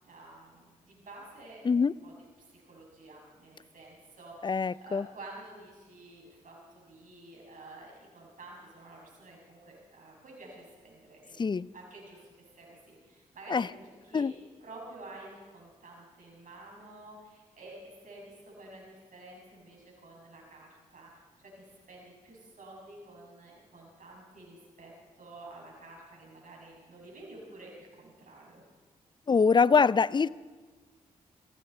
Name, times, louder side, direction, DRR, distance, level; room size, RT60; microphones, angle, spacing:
voice 1, 0.0-2.1 2.5-11.5 11.7-12.2 12.5-14.3 14.6-24.9 25.2-28.6, right 2 dB, 60° right, -2 dB, 6.6 m, -50 dB
voice 2, 4.4-5.1 11.4-11.7 13.5-13.7 14.1-14.3 29.3-30.3, left 5 dB, 30° left, 21 dB, 0.4 m, -24 dB
20.5 x 15.5 x 4.3 m, 1.4 s
supercardioid pair, 40°, 15 cm